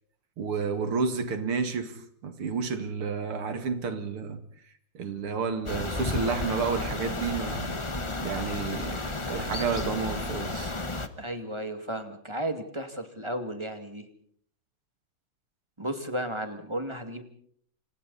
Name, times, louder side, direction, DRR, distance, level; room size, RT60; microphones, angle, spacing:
voice 1, 0.4-4.4 4.9-7.7 8.2-10.7, right 5 dB, 85° right, 3.0 m, -31 dB
sound 1, 5.7-11.1, left 2 dB, 20° left, 0.9 m, -32 dB
voice 2, 11.2-14.0 15.8-17.2, right 1 dB, 15° right, 2.2 m, -34 dB
30.0 x 27.0 x 4.2 m
omnidirectional pair, 2.3 m